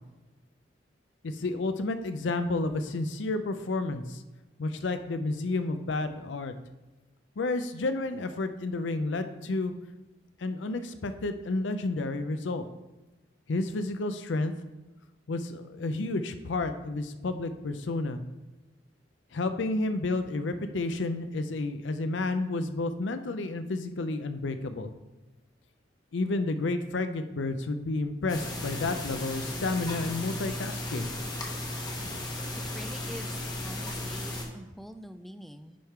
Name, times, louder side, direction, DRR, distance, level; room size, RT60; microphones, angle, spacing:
voice 1, 1.2-4.2 4.6-6.5 7.4-9.7 10.4-12.6 13.5-14.5 15.3-18.2 19.3-24.9 26.1-31.1, left 2 dB, 75° left, 9 dB, 0.5 m, -31 dB
sound 1, 28.3-34.4, left 1 dB, 20° left, 1.0 m, -35 dB
voice 2, 32.5-35.8, equal, ahead, 9 dB, 0.3 m, -45 dB
10.0 x 3.6 x 4.5 m, 1.1 s
head